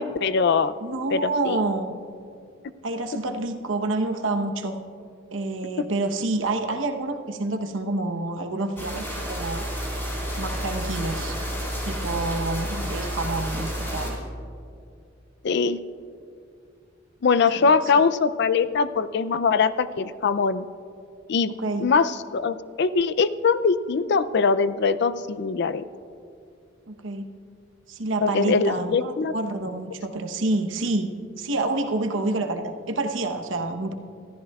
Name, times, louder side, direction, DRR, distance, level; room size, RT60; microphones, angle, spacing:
voice 1, 0.0-0.7 1.1-1.6 15.4-15.8 17.2-20.6 21.3-21.5 21.8-25.8 28.2-29.3, left 5 dB, 60° left, 14 dB, 0.4 m, -22 dB
voice 2, 0.8-1.9 2.8-4.8 5.3-9.6 10.4-11.3 11.8-14.2 17.5-17.9 21.6-21.9 26.9-27.2 27.9-33.9, right 2 dB, 85° right, 5 dB, 1.0 m, -28 dB
sound 1, 8.8-14.1, equal, 15° left, 4.1 m, -30 dB
25.5 x 13.5 x 2.4 m, 2.4 s
head